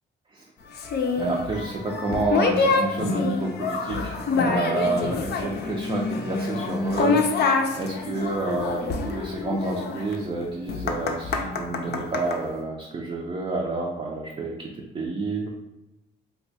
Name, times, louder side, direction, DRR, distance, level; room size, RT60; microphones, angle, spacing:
sound 1, 0.7-12.4, left 4 dB, 55° left, 0.5 m, -26 dB
voice 1, 1.2-7.2 7.8-15.5, right 2 dB, 30° right, -2 dB, 0.5 m, -29 dB
2.7 x 2.2 x 4.1 m, 0.94 s
cardioid pair, 90°, 20 cm